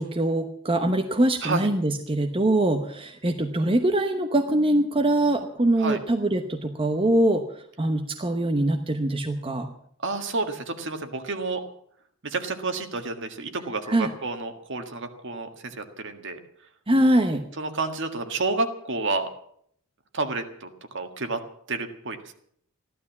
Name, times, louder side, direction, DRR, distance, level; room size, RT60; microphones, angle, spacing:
voice 1, 0.0-7.4 7.8-9.7 13.9-14.1 16.9-17.4, right 1 dB, 25° right, 5 dB, 1.0 m, -23 dB
voice 2, 10.0-11.6 12.2-16.4 17.6-19.3 20.1-21.4 21.7-22.3, right 3 dB, 55° right, 7 dB, 1.7 m, -30 dB
15.5 x 12.0 x 7.3 m, 0.66 s
head